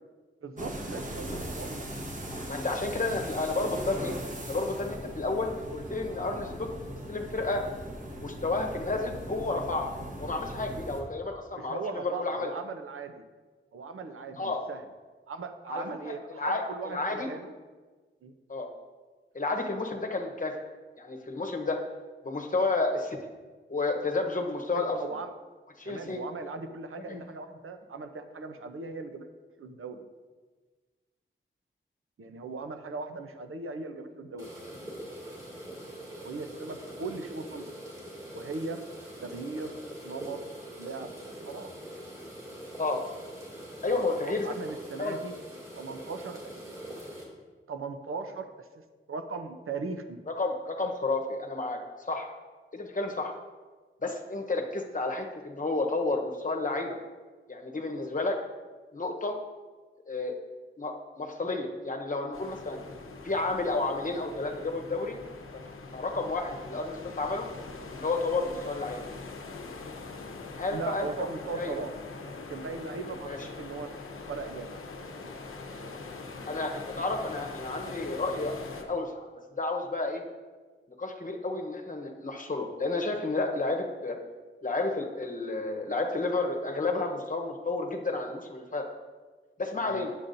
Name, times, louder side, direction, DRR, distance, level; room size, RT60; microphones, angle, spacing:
voice 1, 0.4-1.9 11.6-13.2 13.7-14.9 15.3-17.5 18.2-18.3 24.8-25.3 25.9-29.3 29.6-30.1 32.2-34.5 36.2-37.8 38.3-38.8 39.2-39.8 40.0-40.4 40.8-41.1 41.4-41.7 44.2-45.3 45.8-46.5 47.7-50.2 70.7-71.9 72.4-73.9 74.3-74.8 75.2-75.3 89.9-90.1, right 4 dB, 90° right, 7 dB, 0.7 m, -38 dB
sound 1, 0.6-11.0, right 1 dB, 35° right, 1.3 m, -39 dB
voice 2, 2.5-4.2 4.5-7.6 8.2-12.5 14.4-14.6 15.7-17.3 18.5-18.7 19.3-20.5 21.0-21.8 22.2-23.2 23.7-25.0 25.8-26.2 27.1-27.2 42.8-43.0 43.8-44.5 45.0-45.2 50.4-51.8 52.1-52.3 52.7-53.4 54.0-57.0 57.5-58.4 58.9-59.4 60.1-60.4 60.8-62.8 63.2-65.2 65.9-67.5 67.9-69.1 70.6-71.1 71.5-71.7 73.2-73.5 76.5-79.3 79.6-80.2 81.0-84.2 84.6-88.8 89.6-90.1, left 3 dB, 40° left, 2 dB, 0.9 m, -31 dB
sound 2, 34.4-47.2, right 1 dB, 15° right, 2.2 m, -43 dB
sound 3, 62.3-78.8, left 3 dB, 85° left, 0.8 m, -43 dB
9.9 x 7.1 x 2.6 m, 1.4 s
wide cardioid pair, 100°, 21 cm